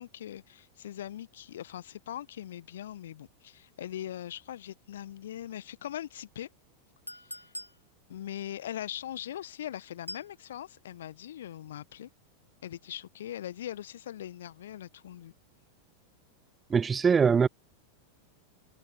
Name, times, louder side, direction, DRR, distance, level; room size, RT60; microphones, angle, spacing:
voice 1, 0.0-6.5 7.1-7.4 8.1-12.1 12.6-15.3, left 11 dB, 60° left, 1.4 m, -41 dB
Chink clink, 7.1-7.8 10.1-10.3, equal, 90° left, 3.0 m, -42 dB
voice 2, 16.7-17.5, right 6 dB, 20° right, 0.4 m, -22 dB
figure-of-eight pair, 90°, 0 cm